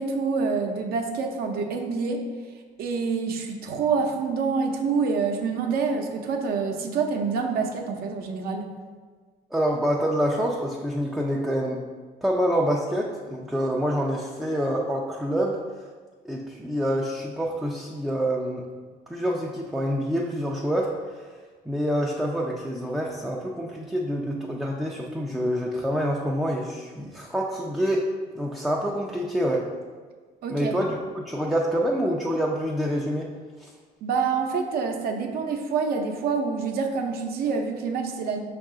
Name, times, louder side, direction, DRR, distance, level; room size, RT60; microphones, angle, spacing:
voice 1, 0.0-2.2 2.8-8.7 30.4-30.7 34.0-38.4, right 5 dB, 65° right, 3 dB, 0.6 m, -27 dB
voice 2, 9.5-11.8 12.2-15.6 16.2-18.7 19.1-21.2 21.7-28.1 28.3-29.7 30.5-33.3 33.6-33.7, equal, ahead, -2 dB, 0.3 m, -26 dB
5.4 x 2.4 x 3.7 m, 1.5 s
cardioid pair, 110°, 17 cm